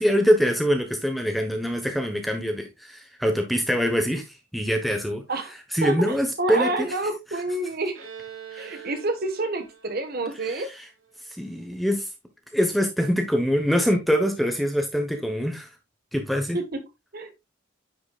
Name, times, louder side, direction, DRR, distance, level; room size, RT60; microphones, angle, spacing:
voice 1, 0.0-4.3 4.5-5.2 5.7-6.9 8.5-8.9 11.4-12.1 12.5-15.7 16.1-16.6, equal, ahead, 1.1 m, -24 dB
voice 2, 5.8-8.0 8.6-10.7 16.5-16.8 17.1-17.3, right 2 dB, 45° right, 1.5 m, -28 dB
Bowed string instrument, 7.9-11.5, right 8 dB, 75° right, 3.0 m, -44 dB
9.9 x 5.9 x 2.4 m
head